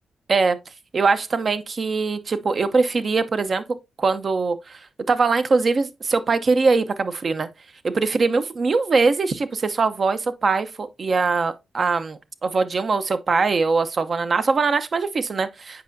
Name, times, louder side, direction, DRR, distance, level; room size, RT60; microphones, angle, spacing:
voice 1, 0.9-3.6 4.0-4.8 5.1-7.5 7.8-15.8, right 4 dB, 55° right, 0.7 m, -22 dB
7.9 x 5.3 x 2.6 m
cardioid pair, 55°, 0 cm